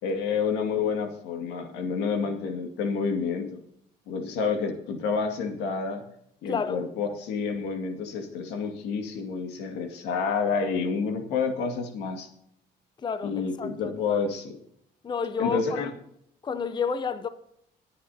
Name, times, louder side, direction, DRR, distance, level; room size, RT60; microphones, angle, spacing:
voice 1, 0.0-3.6 4.1-6.0 6.4-12.3 13.2-14.6 15.4-15.9, left 5 dB, 90° left, 2.1 m, -29 dB
voice 2, 6.5-6.8 13.0-14.2 15.0-15.9 16.4-17.3, left 6 dB, 25° left, 0.7 m, -30 dB
24.0 x 8.4 x 2.8 m
cardioid pair, 110°, 17 cm